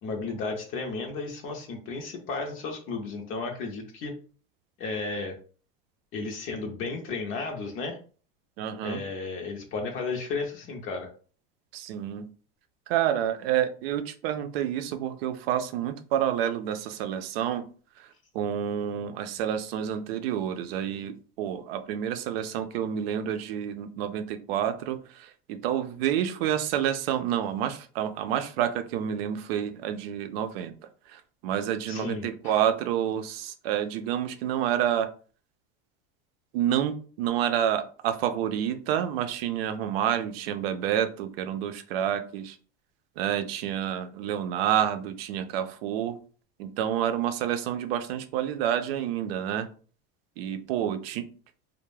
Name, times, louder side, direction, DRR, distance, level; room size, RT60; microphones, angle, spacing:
voice 1, 0.0-4.1 4.8-5.4 6.1-8.0 8.8-11.1 31.9-32.6, left 4 dB, 45° left, 3 dB, 0.6 m, -33 dB
voice 2, 8.6-9.0 11.7-12.3 12.9-17.6 18.0-18.1 18.3-30.7 31.1-35.1 36.5-42.6 43.2-46.2 46.6-49.7 50.4-51.3, right 10 dB, 80° right, 9 dB, 0.5 m, -29 dB
2.2 x 2.1 x 3.1 m, 0.40 s
supercardioid pair, 130°, 29 cm